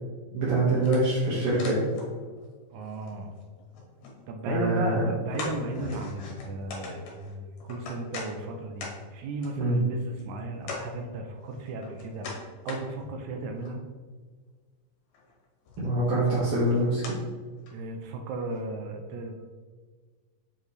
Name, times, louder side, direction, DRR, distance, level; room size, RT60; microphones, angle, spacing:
voice 1, 0.3-1.8 4.5-5.0 9.6-9.8 15.8-17.0, right 1 dB, 55° right, -10 dB, 2.1 m, -24 dB
sound 1, 0.8-2.5 2.7-4.2 4.6-4.7 5.3-8.3 8.8-8.9 9.4-9.5 10.2-10.3 10.6-10.8 11.4-12.8 13.3-13.8 15.1-15.3 15.7-16.1 16.6-17.2 17.7-17.8 18.4-18.5, left 3 dB, 65° left, 2.3 m, -40 dB
voice 2, 2.7-3.3 4.3-12.3 12.7-13.8 17.7-19.4, right 2 dB, 75° right, 4 dB, 1.7 m, -35 dB
7.2 x 4.8 x 3.2 m, 1.5 s
omnidirectional pair, 3.9 m